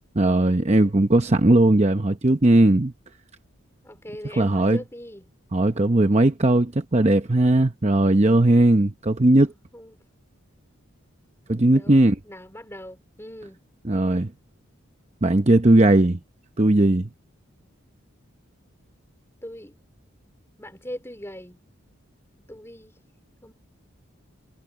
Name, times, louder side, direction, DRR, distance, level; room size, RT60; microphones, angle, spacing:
voice 1, 0.2-2.9 4.2-4.8 5.5-9.5 11.5-12.2 13.8-14.3 15.2-16.2 16.6-17.1, right 1 dB, 30° right, 0.8 m, -18 dB
voice 2, 3.8-5.3 9.7-10.0 11.7-13.6 19.4-19.8 20.6-21.6 22.5-22.9 23.4-23.5, equal, 10° left, 3.4 m, -40 dB
head